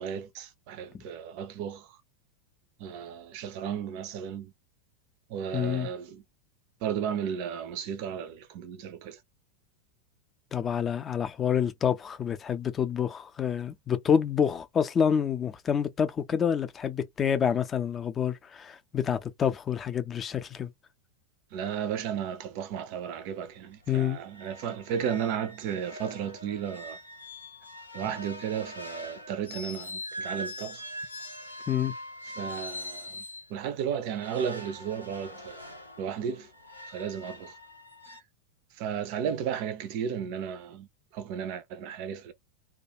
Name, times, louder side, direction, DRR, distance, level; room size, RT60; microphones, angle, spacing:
voice 1, 0.0-2.0 2.8-4.5 5.3-6.2 6.8-9.2 21.5-27.0 27.9-30.8 32.4-33.2 33.5-35.7 36.0-36.5 36.9-37.6 38.7-40.9 41.1-42.3, right 8 dB, 45° right, 0.4 m, -34 dB
voice 2, 5.5-5.9 10.5-20.7 23.9-24.2 31.7-31.9, left 8 dB, 25° left, 0.5 m, -28 dB
sound 1, 23.5-23.6 23.9-24.0 24.3-33.5 34.1-38.2, left 1 dB, 90° left, 0.7 m, -42 dB
2.3 x 2.3 x 2.9 m
figure-of-eight pair, 90°, 0 cm